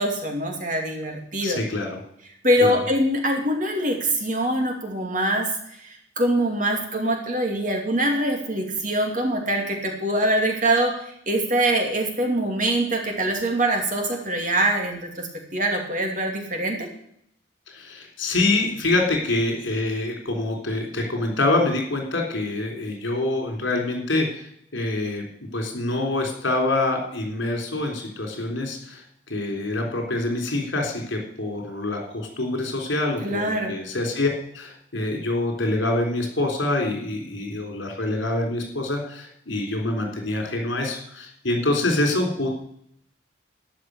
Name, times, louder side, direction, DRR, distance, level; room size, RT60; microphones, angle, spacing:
voice 1, 0.0-1.6 2.4-5.5 5.8-5.9 6.2-10.9 11.3-16.9 33.2-33.7, right 1 dB, 40° right, 2 dB, 2.6 m, -23 dB
voice 2, 1.4-2.0 2.6-2.8 17.7-25.2 25.5-34.3 34.5-42.5, left 2 dB, 75° left, 2 dB, 3.7 m, -26 dB
13.0 x 5.9 x 9.5 m, 0.71 s
head